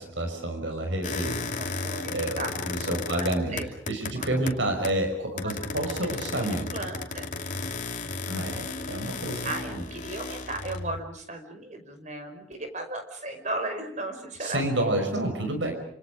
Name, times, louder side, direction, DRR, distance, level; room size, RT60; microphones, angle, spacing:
voice 1, 0.0-1.4 2.1-3.6 3.9-6.7 8.3-9.4 14.4-15.7, right 1 dB, 80° right, 5 dB, 5.6 m, -29 dB
sound 1, 1.0-5.1 5.4-11.0, left 3 dB, 40° left, 2.7 m, -34 dB
voice 2, 1.6-2.5 2.9-3.7 4.1-4.5 5.4-7.3 9.4-14.9, right 2 dB, 40° right, 6 dB, 5.2 m, -36 dB
28.5 x 27.0 x 5.2 m, 0.65 s
head